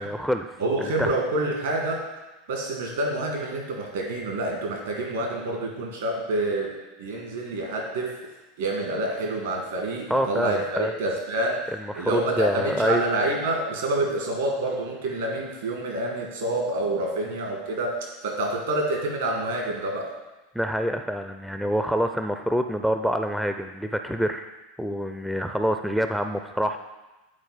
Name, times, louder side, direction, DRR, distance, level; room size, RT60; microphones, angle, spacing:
voice 1, 0.0-0.5 0.8-1.1 10.1-10.9 11.8-13.0 20.5-24.5 24.8-26.8, equal, ahead, 6 dB, 0.4 m, -26 dB
voice 2, 0.6-2.0 2.5-8.2 8.6-11.7 12.0-20.2, right 1 dB, 70° right, 0 dB, 1.9 m, -27 dB
8.8 x 4.3 x 4.1 m, 1.1 s
figure-of-eight pair, 80°, 0 cm